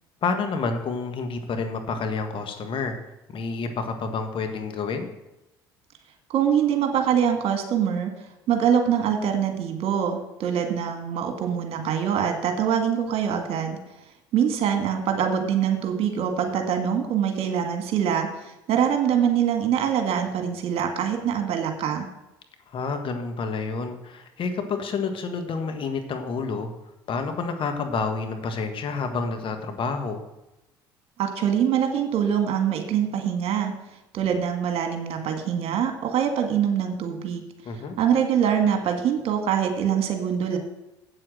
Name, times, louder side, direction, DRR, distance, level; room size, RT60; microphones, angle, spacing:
voice 1, 0.2-2.9 3.3-5.1 22.7-26.7 27.1-30.2 37.6-38.0, left 4 dB, 45° left, 6 dB, 1.5 m, -29 dB
voice 2, 6.3-8.1 8.5-13.8 14.3-22.1 31.2-33.7 34.1-37.4 38.0-40.6, right 8 dB, 55° right, 5 dB, 1.9 m, -24 dB
8.3 x 7.7 x 6.3 m, 0.96 s
hypercardioid pair, 65°, 12 cm